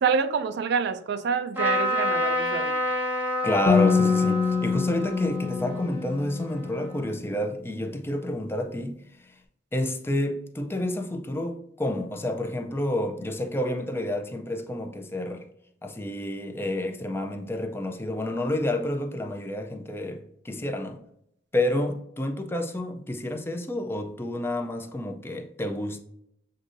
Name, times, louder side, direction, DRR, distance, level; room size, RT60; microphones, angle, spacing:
voice 1, 0.0-2.9, right 6 dB, 65° right, 0.3 m, -27 dB
Trumpet, 1.6-7.1, left 1 dB, 10° right, 0.9 m, -29 dB
voice 2, 3.4-9.0 9.7-15.5 15.8-21.0 21.5-26.0, left 1 dB, 15° left, 0.4 m, -29 dB
sound 1, 3.7-6.8, left 5 dB, 70° left, 0.5 m, -25 dB
7.5 x 2.6 x 2.6 m
head